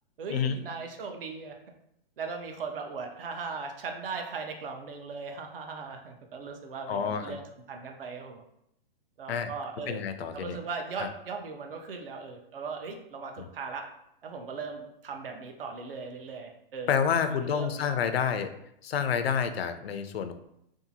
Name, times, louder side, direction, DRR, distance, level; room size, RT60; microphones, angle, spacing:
voice 1, 0.2-1.6 2.2-7.4 7.7-8.4 9.2-10.0 10.3-13.9 14.2-16.9 17.3-17.9, right 4 dB, 70° right, 4 dB, 0.6 m, -38 dB
voice 2, 6.9-7.4 9.3-9.5 9.9-10.6 11.0-11.1 13.4-13.5 16.9-18.5 18.8-20.3, left 7 dB, 90° left, 9 dB, 0.5 m, -29 dB
2.7 x 2.4 x 2.6 m, 0.77 s
hypercardioid pair, 165°, 29 cm